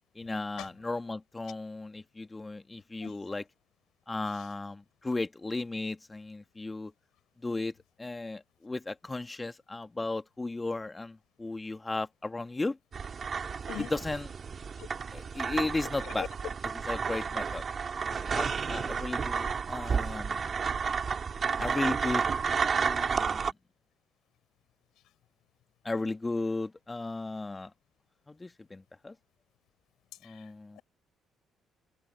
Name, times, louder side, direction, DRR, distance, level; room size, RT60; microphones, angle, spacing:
voice 1, 0.1-3.4 4.1-6.9 7.4-7.7 8.0-12.8 13.8-14.3 15.1-16.3 16.7-17.6 18.1-20.5 21.6-22.2 22.8-23.5 25.8-27.7 28.3-29.1 30.2-30.8, left 2 dB, 20° left, 2.4 m, -35 dB
voice 2, 3.0-3.4 13.7-13.9 14.8-14.9 16.0-16.3 30.2-30.4, left 14 dB, 65° left, 4.7 m, -41 dB
sound 1, 12.9-23.5, right 6 dB, 40° right, 3.5 m, -31 dB
figure-of-eight pair, 45°, 0 cm